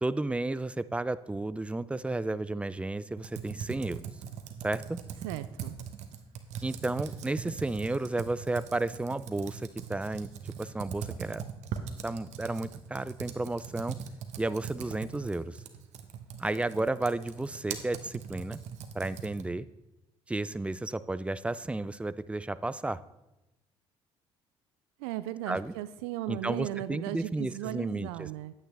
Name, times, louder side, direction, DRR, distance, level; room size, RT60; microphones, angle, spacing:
voice 1, 0.0-4.0 4.6-5.0 6.6-10.3 10.6-11.4 12.0-14.0 14.4-15.6 16.4-18.6 18.9-19.7 20.3-23.0 25.5-25.7 26.3-28.3, right 2 dB, 10° right, 17 dB, 0.4 m, -32 dB
Computer keyboard, 3.2-19.6, right 8 dB, 65° right, 1.0 m, -41 dB
voice 2, 5.2-5.8 25.0-28.5, right 14 dB, 80° right, 13 dB, 0.4 m, -36 dB
9.4 x 8.8 x 3.5 m, 0.96 s
hypercardioid pair, 60°, 13 cm